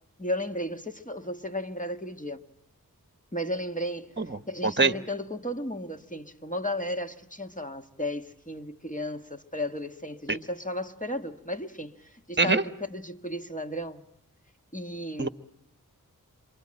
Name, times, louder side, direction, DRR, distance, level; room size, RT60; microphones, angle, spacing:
voice 1, 0.2-2.4 3.3-4.2 4.5-14.0 14.7-15.3, left 1 dB, 20° left, 1.5 m, -34 dB
voice 2, 4.2-4.3 4.6-4.9 10.3-10.4 12.4-12.6 15.2-15.3, right 3 dB, 30° right, 1.1 m, -23 dB
27.5 x 24.5 x 8.8 m
wide cardioid pair, 40°, 35 cm